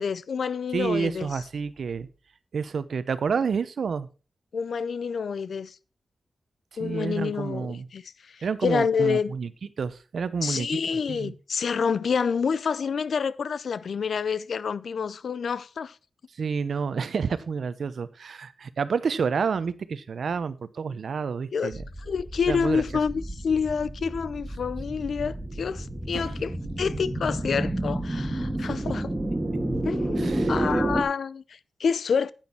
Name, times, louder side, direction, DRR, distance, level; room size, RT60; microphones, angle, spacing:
voice 1, 0.0-1.4 4.5-5.8 6.8-9.3 10.4-16.0 21.5-21.7 22.0-29.1 29.8-32.3, left 6 dB, 75° left, 0.6 m, -28 dB
voice 2, 0.7-2.1 2.5-4.1 6.8-7.9 8.4-9.5 9.8-11.3 16.4-21.8 22.5-22.8 26.1-26.3 30.2-30.8, right 5 dB, 75° right, 0.8 m, -29 dB
sound 1, 21.7-31.0, right 1 dB, 15° right, 2.1 m, -30 dB
9.7 x 9.1 x 4.5 m
wide cardioid pair, 110°, 0 cm